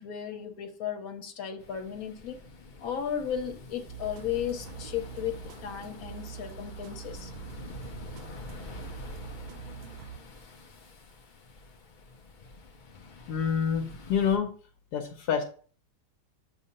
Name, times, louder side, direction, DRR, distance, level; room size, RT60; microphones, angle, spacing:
voice 1, 0.0-2.4 2.8-5.3 5.6-7.3, left 9 dB, 65° left, 4 dB, 1.4 m, -35 dB
sound 1, 1.6-14.4, left 3 dB, 45° left, 0.7 m, -47 dB
sound 2, 3.9-10.7, right 11 dB, 70° right, 0.9 m, -45 dB
voice 2, 13.3-14.5 14.9-15.4, left 7 dB, 80° left, 4 dB, 1.3 m, -27 dB
7.8 x 2.8 x 5.3 m, 0.43 s
omnidirectional pair, 1.7 m